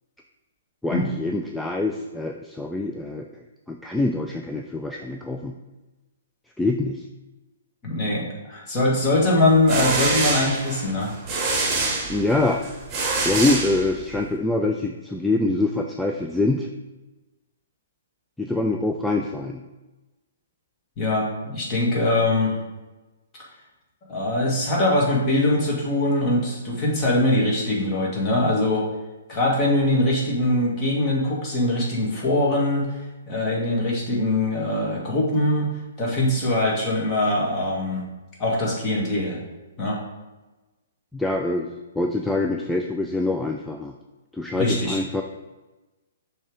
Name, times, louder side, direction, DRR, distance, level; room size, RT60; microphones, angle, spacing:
voice 1, 0.8-3.3 3.7-5.6 6.6-7.0 12.1-12.6 13.2-16.7 18.4-19.6 41.1-43.9 44.3-45.2, left 2 dB, 5° left, 2 dB, 0.3 m, -25 dB
voice 2, 7.8-11.1 21.0-22.5 24.1-28.9 29.3-33.0 33.3-35.7 36.0-38.0 38.4-39.4 39.8-40.0 44.5-45.0, left 1 dB, 25° left, -4 dB, 2.0 m, -22 dB
sound 1, 9.4-14.3, right 3 dB, 20° right, 1.2 m, -26 dB
6.2 x 3.4 x 5.0 m, 1.1 s
figure-of-eight pair, 120°, 0 cm